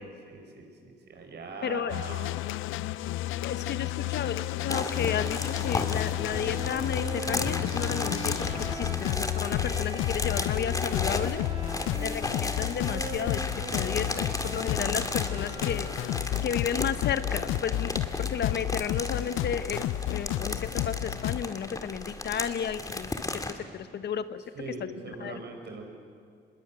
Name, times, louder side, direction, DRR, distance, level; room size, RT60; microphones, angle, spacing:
voice 1, 0.0-2.5 8.8-9.7 11.8-12.1 24.5-25.9, right 3 dB, 60° right, 3 dB, 5.5 m, -42 dB
voice 2, 1.6-1.9 3.4-11.4 12.0-15.9 16.4-19.8 20.1-23.4 23.7-24.7 25.2-25.4, left 8 dB, 60° left, 12 dB, 1.0 m, -33 dB
sound 1, 1.9-21.4, left 15 dB, 85° left, 0.5 m, -32 dB
sound 2, 4.7-23.5, left 2 dB, 15° left, 2.0 m, -35 dB
Bowed string instrument, 4.7-16.6, right 1 dB, 20° right, 3.1 m, -42 dB
25.0 x 21.0 x 8.9 m, 2.2 s
cardioid pair, 90°, 20 cm